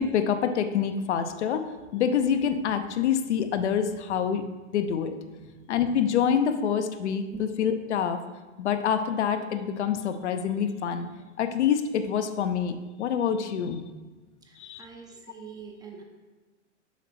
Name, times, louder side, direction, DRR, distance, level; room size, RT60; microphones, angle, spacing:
voice 1, 0.0-4.4 4.7-5.2 5.7-8.2 8.6-11.1 11.4-13.8 14.6-14.8, left 8 dB, 65° left, 8 dB, 0.7 m, -26 dB
voice 2, 14.4-16.0, right 6 dB, 10° right, 1 dB, 0.7 m, -45 dB
7.2 x 5.1 x 4.3 m, 1.3 s
hypercardioid pair, 125°, 38 cm